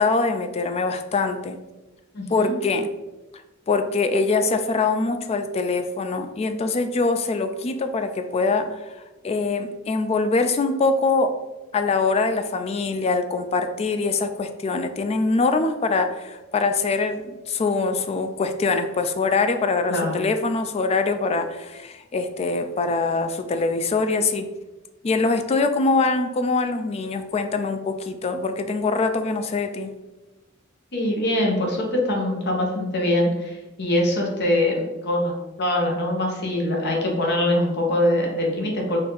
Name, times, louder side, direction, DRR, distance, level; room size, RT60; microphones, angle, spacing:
voice 1, 0.0-1.6 2.3-2.9 3.7-8.8 9.2-11.3 11.7-24.5 25.0-29.9, left 3 dB, 30° left, 8 dB, 0.3 m, -23 dB
voice 2, 2.1-2.6 19.9-20.1 30.9-35.3 35.6-39.0, left 1 dB, 50° left, 0 dB, 1.0 m, -23 dB
4.2 x 2.7 x 3.8 m, 1.1 s
head